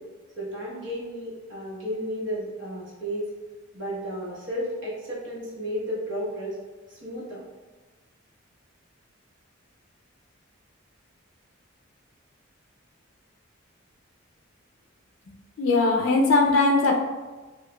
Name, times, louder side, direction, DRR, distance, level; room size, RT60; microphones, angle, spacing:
voice 1, 0.4-3.3 3.7-6.6 6.9-7.4, equal, 65° right, -6 dB, 1.1 m, -33 dB
voice 2, 15.6-17.0, left 3 dB, 75° left, 0 dB, 0.4 m, -20 dB
4.7 x 2.3 x 2.2 m, 1.3 s
head